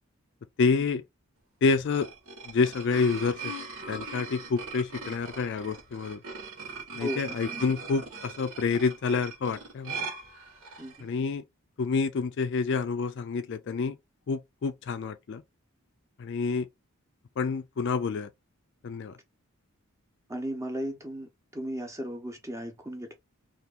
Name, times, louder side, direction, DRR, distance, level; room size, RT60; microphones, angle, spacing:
voice 1, 0.6-1.0 1.6-2.1 2.5-3.5 3.9-6.2 6.9-10.1 11.0-11.4 11.8-14.0 14.3-15.4 16.2-16.7 17.4-18.3 18.8-19.2, left 4 dB, 55° left, 0.3 m, -28 dB
sound 1, 1.7-11.0, right 4 dB, 65° right, 1.2 m, -40 dB
voice 2, 7.0-7.4 10.8-11.1 20.3-23.1, equal, 15° right, 0.7 m, -36 dB
2.9 x 2.4 x 3.5 m
head